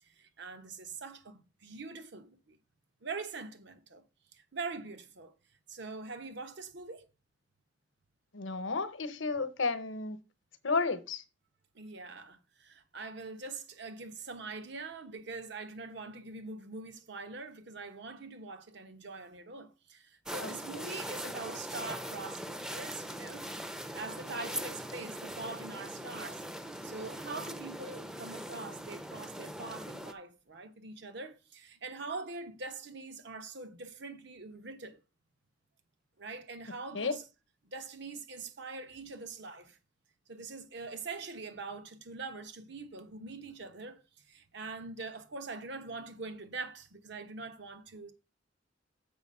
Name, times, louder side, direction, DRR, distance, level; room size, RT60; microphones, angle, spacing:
voice 1, 0.0-2.6 3.0-4.0 4.3-5.3 5.7-7.1 11.7-23.5 23.9-26.4 26.8-35.0 36.2-37.3 37.6-39.8 40.3-44.0 44.3-48.1, right 3 dB, 65° right, 1.1 m, -43 dB
voice 2, 8.3-10.2 10.6-11.2 20.4-20.5 36.9-37.2, left 4 dB, 75° left, 0.9 m, -32 dB
sound 1, 20.3-30.1, equal, 5° right, 0.5 m, -41 dB
7.0 x 5.0 x 5.4 m
head